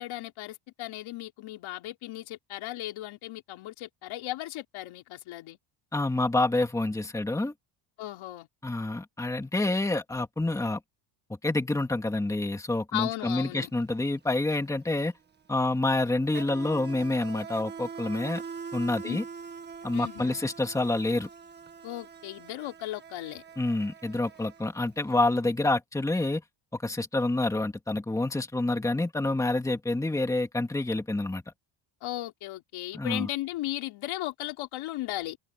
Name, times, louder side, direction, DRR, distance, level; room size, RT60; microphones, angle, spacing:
voice 1, 0.0-5.6 8.0-8.5 12.9-13.7 19.0-19.2 19.9-20.4 21.8-23.4 32.0-35.4, left 16 dB, 70° left, 4.0 m, -36 dB
voice 2, 5.9-7.5 8.6-10.8 11.4-15.1 15.5-18.4 18.7-19.2 19.8-21.3 23.6-26.4 26.7-31.4 32.9-33.3, left 2 dB, 5° left, 2.3 m, -28 dB
Insect, 13.6-13.8 14.1-25.1, right 5 dB, 20° right, 1.7 m, -43 dB
cardioid pair, 160°, 50 cm